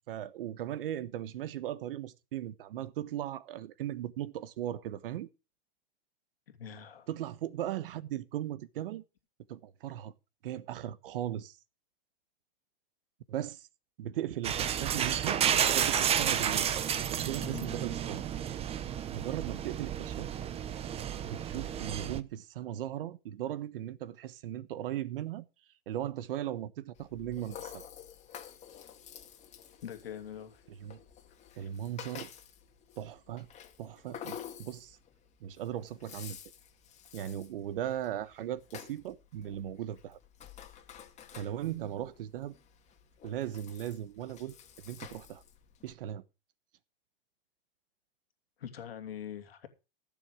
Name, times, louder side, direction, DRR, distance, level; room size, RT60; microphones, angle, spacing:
voice 1, 0.1-5.3 7.1-9.0 9.5-10.1 10.4-11.6 13.3-13.7 14.0-16.7 17.1-18.2 19.1-20.3 21.2-25.4 25.9-27.9 30.8-31.0 31.6-32.3 33.0-33.5 33.8-35.0 35.4-36.4 37.1-40.2 41.3-42.5 43.2-44.5 44.8-45.4 45.8-46.2, right 11 dB, 70° right, 1.2 m, -38 dB
voice 2, 6.5-7.1 17.4-17.8 29.8-30.6 31.6-31.7 48.6-49.7, left 9 dB, 85° left, 2.5 m, -43 dB
sound 1, 14.4-22.2, right 9 dB, 20° right, 0.9 m, -31 dB
Rattle (instrument), 27.0-45.9, left 9 dB, 25° left, 1.9 m, -50 dB
15.5 x 7.3 x 5.0 m
hypercardioid pair, 135°, 29 cm